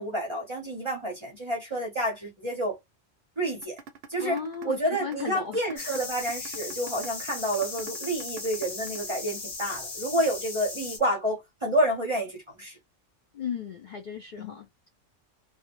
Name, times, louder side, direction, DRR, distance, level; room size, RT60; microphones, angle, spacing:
voice 1, 0.0-2.8 3.4-3.8 4.1-12.8 14.4-14.6, right 1 dB, 30° right, 0.6 m, -29 dB
sound 1, 3.6-9.6, right 6 dB, 65° right, 0.7 m, -45 dB
voice 2, 4.2-6.0 13.3-14.9, left 7 dB, 60° left, 0.5 m, -36 dB
sound 2, 5.8-11.0, left 3 dB, 45° left, 0.8 m, -37 dB
2.3 x 2.1 x 2.9 m
omnidirectional pair, 1.3 m